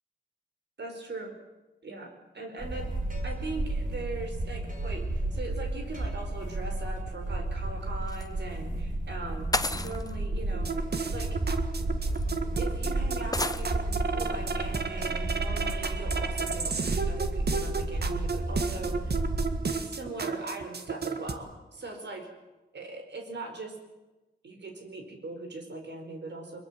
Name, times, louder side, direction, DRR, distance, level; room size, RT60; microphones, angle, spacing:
voice 1, 0.8-1.3 1.8-2.9 3.2-8.7 9.1-11.4 12.6-19.2 19.8-22.3 22.7-23.8 24.4-26.6, right 2 dB, 85° right, 4 dB, 4.6 m, -40 dB
sound 1, 2.6-19.9, right 2 dB, 50° right, 4.2 m, -32 dB
sound 2, 8.1-8.3 9.5-10.1 11.3-11.4 12.1-12.2 13.3-13.7, left 2 dB, 20° left, 1.0 m, -30 dB
sound 3, 10.5-21.3, right 4 dB, 65° right, 1.8 m, -33 dB
22.5 x 22.5 x 7.5 m, 1.1 s
wide cardioid pair, 75°, 18 cm